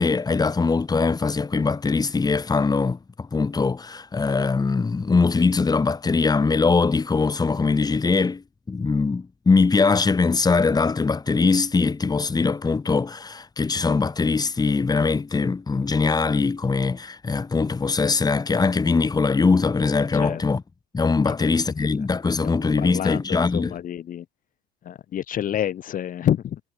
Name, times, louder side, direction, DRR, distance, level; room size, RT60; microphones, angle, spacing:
voice 1, 0.0-20.6 20.9-23.8, left 4 dB, 20° left, 4.2 m, -22 dB
voice 2, 21.8-24.3 24.8-26.6, left 10 dB, 40° left, 4.2 m, -29 dB
hypercardioid pair, 80°, 21 cm